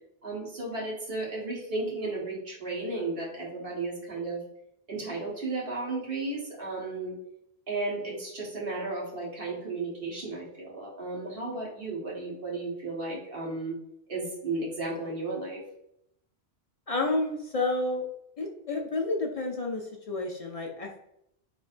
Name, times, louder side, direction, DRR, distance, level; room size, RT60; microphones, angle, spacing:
voice 1, 0.2-4.4 4.9-7.1 7.7-13.7 14.1-15.6, right 3 dB, 60° right, -4 dB, 1.5 m, -34 dB
voice 2, 16.9-18.0 18.4-21.0, left 2 dB, 50° left, 0 dB, 0.4 m, -30 dB
4.4 x 3.0 x 2.5 m, 0.76 s
omnidirectional pair, 1.1 m